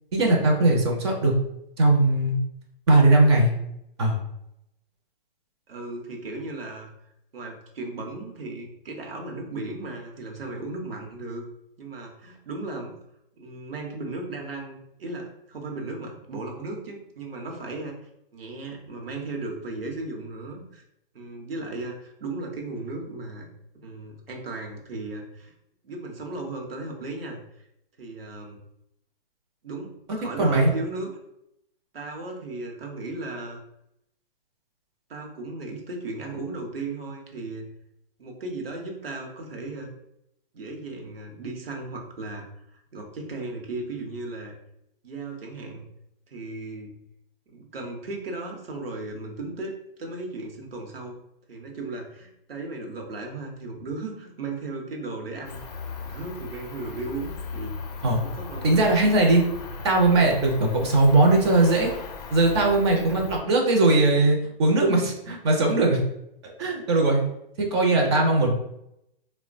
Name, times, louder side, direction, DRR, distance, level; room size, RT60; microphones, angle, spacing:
voice 1, 0.1-1.3 1.8-2.4 2.9-3.5 4.0-4.2 30.4-30.7 58.0-58.2 58.6-59.4 59.8-61.9 62.3-66.0 66.6-67.3 67.6-68.5, right 2 dB, 30° right, 1 dB, 0.5 m, -19 dB
voice 2, 5.7-6.9 7.3-11.4 11.8-13.0 13.4-17.9 18.3-20.8 21.1-23.5 23.8-25.5 25.8-27.4 28.0-28.6 29.6-31.1 31.9-33.6 35.1-37.7 38.2-39.9 40.5-42.4 42.7-44.6 45.0-45.8 46.3-46.9 47.5-49.7 50.0-51.2 51.5-55.6 56.0-57.7 58.2-58.9 59.2-59.4 62.9-63.2, right 2 dB, 80° right, 1 dB, 0.8 m, -36 dB
Cricket, 55.4-63.4, left 4 dB, 45° left, 0.5 m, -38 dB
3.0 x 2.1 x 2.5 m, 0.79 s
hypercardioid pair, 130°, 29 cm